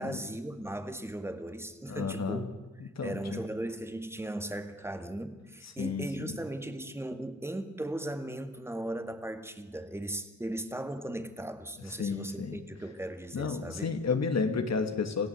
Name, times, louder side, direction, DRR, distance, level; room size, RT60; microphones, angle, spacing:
voice 1, 0.0-2.5 3.0-13.9, right 1 dB, 10° right, 8 dB, 2.0 m, -37 dB
voice 2, 1.9-2.5 2.8-3.4 5.6-6.4 12.0-12.6 13.3-15.3, left 5 dB, 60° left, 6 dB, 2.6 m, -32 dB
27.5 x 16.5 x 8.3 m, 1.1 s
wide cardioid pair, 110°, 31 cm